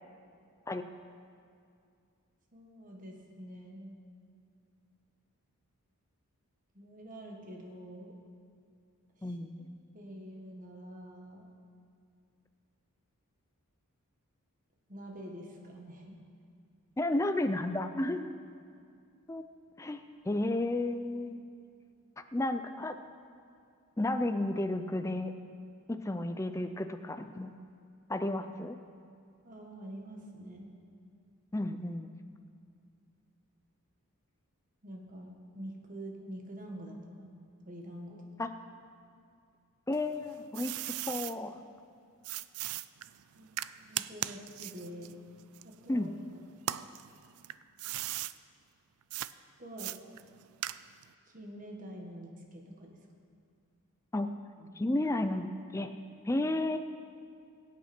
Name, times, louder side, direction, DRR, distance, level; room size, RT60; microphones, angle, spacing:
voice 1, 2.5-4.0 6.7-8.1 9.2-9.3 9.9-11.5 14.9-16.1 29.4-30.7 34.8-38.6 43.3-43.5 43.9-45.2 45.6-46.5 49.6-49.9 51.3-53.0 54.6-54.8, equal, 35° right, 0 dB, 1.5 m, -46 dB
voice 2, 9.2-9.6 17.0-18.3 19.3-19.4 19.8-20.0 20.3-21.4 22.3-23.0 24.0-25.3 25.9-27.5 28.1-28.8 31.5-32.1 38.4-38.5 39.9-40.7 41.1-41.6 45.9-46.1 54.1-54.3 54.8-55.9 56.3-56.8, left 1 dB, 15° left, 8 dB, 0.4 m, -32 dB
sound 1, 39.9-41.4 42.2-46.2 46.6-48.4 49.1-49.3 49.8-51.1, right 14 dB, 80° right, 0.4 m, -38 dB
22.0 x 8.6 x 4.4 m, 2.4 s
head